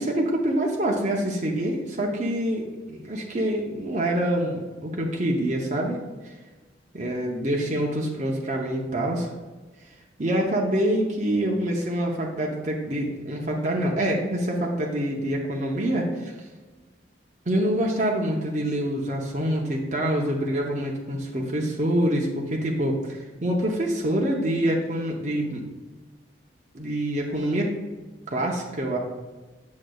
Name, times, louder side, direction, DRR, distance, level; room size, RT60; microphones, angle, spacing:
voice 1, 0.0-6.0 6.9-9.3 10.2-16.3 17.5-25.6 26.7-27.8 28.3-29.0, right 1 dB, 40° right, -1 dB, 0.7 m, -26 dB
8.3 x 6.2 x 2.3 m, 1.2 s
head